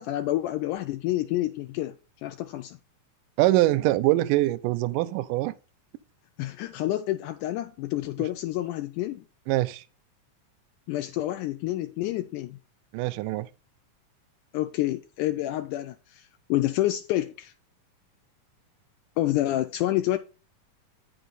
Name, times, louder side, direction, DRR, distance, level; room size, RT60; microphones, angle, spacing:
voice 1, 0.0-1.9 2.2-2.8 6.4-9.3 10.9-12.6 14.5-17.5 19.2-20.2, left 15 dB, 80° left, 2.0 m, -28 dB
voice 2, 3.4-5.6 9.5-9.8 12.9-13.5, right 17 dB, 85° right, 2.1 m, -23 dB
9.1 x 5.6 x 4.0 m
omnidirectional pair, 3.7 m